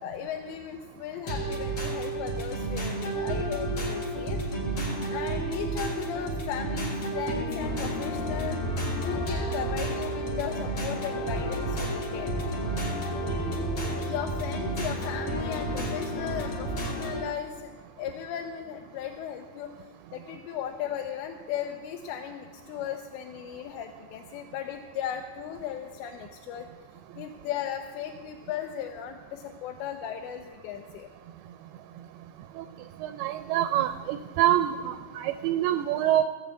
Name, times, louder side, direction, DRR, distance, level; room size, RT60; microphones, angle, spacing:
voice 1, 0.0-4.4 5.1-8.6 9.0-12.3 13.8-19.7 20.1-26.7 27.2-31.1, left 10 dB, 90° left, 4 dB, 2.9 m, -36 dB
sound 1, 1.3-17.3, right 2 dB, 50° left, 1.5 m, -32 dB
sound 2, 7.6-17.1, left 3 dB, 70° left, 2.9 m, -36 dB
voice 2, 33.0-36.2, right 12 dB, 85° right, 10 dB, 2.4 m, -26 dB
15.5 x 7.3 x 8.1 m, 1.5 s
omnidirectional pair, 4.9 m